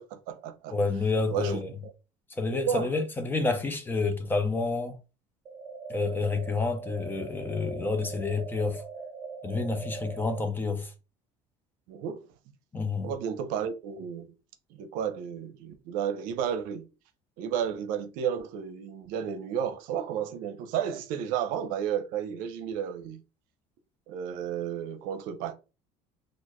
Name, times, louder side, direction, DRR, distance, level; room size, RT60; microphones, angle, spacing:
voice 1, 0.0-0.7 1.3-1.6 2.7-2.9 11.9-12.3 13.0-14.3 14.7-16.9 17.4-23.2 24.1-25.5, right 8 dB, 75° right, 0.7 m, -32 dB
voice 2, 0.7-1.7 2.4-5.0 5.9-8.8 9.4-10.9 12.7-13.1, left 3 dB, 15° left, 0.6 m, -29 dB
sound 1, 5.5-10.5, right 4 dB, 30° right, 1.2 m, -41 dB
4.2 x 2.5 x 3.0 m
cardioid pair, 155°, 14 cm